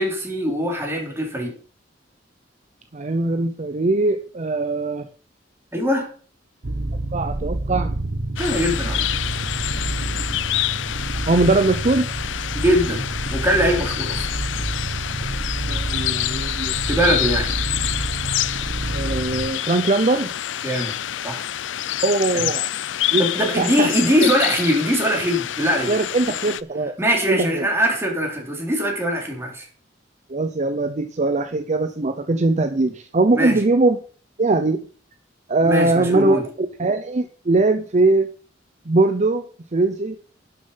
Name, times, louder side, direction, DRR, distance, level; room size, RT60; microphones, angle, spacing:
voice 1, 0.0-1.5 5.7-6.1 8.4-9.2 12.5-13.0 13.3-14.2 16.9-17.5 20.6-21.0 21.2-21.4 22.3-22.5 23.2-25.9 27.0-29.7 33.3-33.6 35.6-36.4, equal, 15° right, 0 dB, 3.4 m, -22 dB
voice 2, 2.9-5.1 7.1-7.9 11.3-12.1 15.7-16.7 18.9-20.3 22.0-22.7 23.1-23.3 23.6-23.9 24.2-24.3 25.9-26.9 27.3-27.7 30.3-34.0 34.4-34.8 35.5-38.3 38.9-40.2, right 2 dB, 40° right, 7 dB, 0.7 m, -21 dB
sound 1, 6.6-19.5, right 2 dB, 70° right, 0.9 m, -28 dB
sound 2, 8.4-26.6, left 12 dB, 80° left, 0.5 m, -27 dB
11.0 x 6.6 x 5.7 m, 0.43 s
head